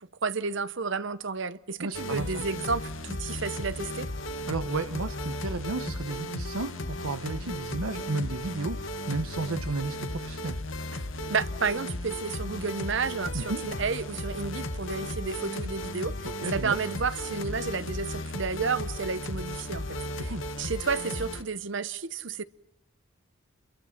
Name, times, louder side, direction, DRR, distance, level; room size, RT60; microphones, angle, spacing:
voice 1, 0.2-4.1 10.9-11.0 11.3-16.1 16.5-20.0 20.2-20.3 20.6-22.4, right 5 dB, 60° right, 0.8 m, -31 dB
voice 2, 1.8-2.4 4.5-10.6 13.3-13.6 16.2-16.8 20.2-20.5, right 3 dB, 85° right, 1.1 m, -33 dB
sound 1, 1.9-21.4, left 1 dB, 65° left, 1.7 m, -35 dB
29.5 x 23.0 x 5.9 m
head